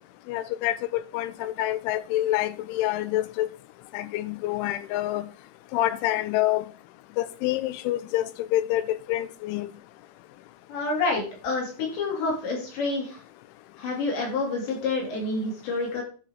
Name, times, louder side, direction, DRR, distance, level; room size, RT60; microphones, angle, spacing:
voice 1, 0.3-3.5 3.9-5.3 5.7-6.6 7.2-9.7, left 14 dB, 85° left, 3.0 m, -27 dB
voice 2, 10.7-13.2 13.8-16.0, left 3 dB, 65° left, 5.0 m, -28 dB
10.5 x 4.9 x 4.7 m
omnidirectional pair, 5.6 m